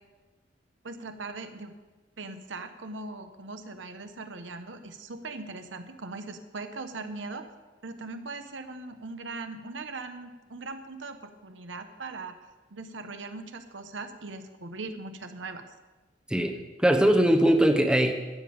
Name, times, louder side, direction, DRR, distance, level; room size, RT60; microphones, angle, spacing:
voice 1, 0.8-1.7 2.2-7.5 7.8-12.4 12.7-15.6, right 3 dB, 85° right, 8 dB, 1.0 m, -40 dB
voice 2, 16.3-18.1, right 1 dB, 5° right, 5 dB, 0.8 m, -21 dB
13.5 x 5.4 x 9.4 m, 1.2 s
head